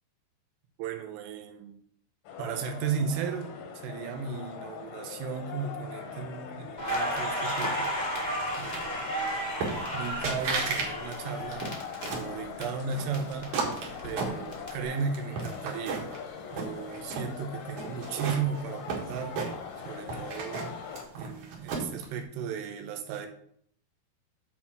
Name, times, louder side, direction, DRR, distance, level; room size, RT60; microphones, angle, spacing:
voice 1, 0.8-1.8 2.4-7.9 8.6-9.0 9.9-11.7 12.1-13.5 14.0-16.1 16.5-19.4 19.8-20.8 21.1-23.3, right 6 dB, 85° right, 6 dB, 3.0 m, -35 dB
sound 1, 2.3-21.0, left 7 dB, 80° left, 3.4 m, -42 dB
Crackle, 6.8-12.6 12.9-14.7, equal, 30° left, 0.7 m, -33 dB
sound 2, 9.6-10.0 10.2-10.9 11.2-12.3 12.9-14.8 15.1-16.2 16.5-17.3 17.8-19.8 20.1-22.0, right 4 dB, 60° right, 2.5 m, -33 dB
8.2 x 4.4 x 6.0 m, 0.66 s
omnidirectional pair, 4.9 m